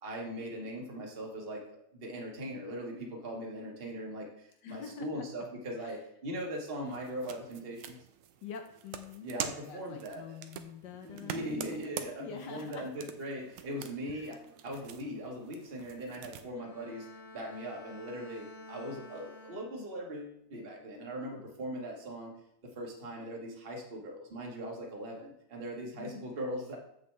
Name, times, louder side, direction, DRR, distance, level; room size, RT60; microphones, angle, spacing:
voice 1, 0.0-8.0 9.2-10.4 11.0-14.4 14.6-17.1 17.3-22.3 22.6-26.8, equal, 30° right, -1 dB, 1.4 m, -40 dB
voice 2, 4.6-5.3 5.8-6.0 8.4-9.3 9.7-13.0 14.1-14.4 14.7-14.8 26.0-26.3, left 6 dB, 70° left, 6 dB, 1.2 m, -46 dB
sound 1, 6.9-16.5, right 9 dB, 80° right, 1.5 m, -45 dB
Bowed string instrument, 16.6-20.2 20.6-21.0, left 2 dB, 35° left, 1.6 m, -51 dB
7.9 x 6.8 x 3.2 m, 0.74 s
omnidirectional pair, 2.3 m